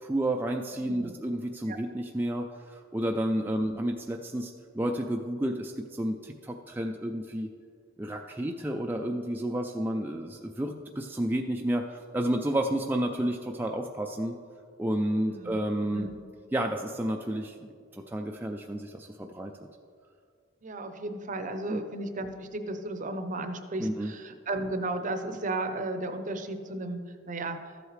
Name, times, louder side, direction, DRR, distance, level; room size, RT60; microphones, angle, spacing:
voice 1, 0.0-7.5 8.0-14.4 14.8-16.1 16.5-19.5 21.7-21.8 23.8-24.1, right 1 dB, 10° right, 2 dB, 0.3 m, -31 dB
voice 2, 0.7-1.1 1.7-1.8 3.4-3.7 8.9-9.1 15.2-15.6 15.9-16.2 20.6-27.0 27.3-27.6, right 2 dB, 40° right, 7 dB, 0.7 m, -34 dB
13.5 x 7.9 x 3.2 m, 2.1 s
head